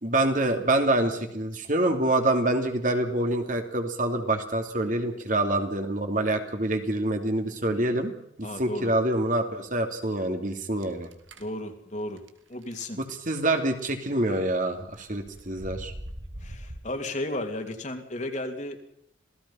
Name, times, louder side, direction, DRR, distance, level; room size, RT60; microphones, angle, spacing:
voice 1, 0.0-8.1 8.4-11.1 13.0-15.9, right 1 dB, 40° right, 5 dB, 2.9 m, -26 dB
voice 2, 8.4-8.9 11.4-12.2 12.5-13.0 16.4-18.8, left 1 dB, 40° left, 4 dB, 2.9 m, -34 dB
sound 1, 10.8-11.5 12.2-12.3 12.6-12.9 13.5-13.8 14.7-16.8, equal, 90° right, 2.6 m, -41 dB
27.5 x 18.0 x 5.7 m, 0.75 s
head